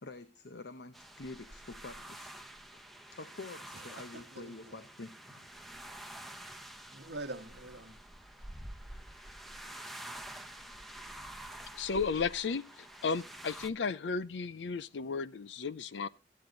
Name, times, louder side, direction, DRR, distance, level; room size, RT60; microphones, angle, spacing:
voice 1, 0.0-2.3 2.7-2.8 3.1-5.5, left 3 dB, 65° left, 0.9 m, -47 dB
sound 1, 0.9-13.7, right 1 dB, ahead, 0.9 m, -48 dB
voice 2, 3.7-4.8 6.9-8.0, right 2 dB, 80° right, 1.3 m, -45 dB
voice 3, 11.7-16.1, left 5 dB, 90° left, 0.5 m, -34 dB
14.5 x 8.6 x 3.8 m
head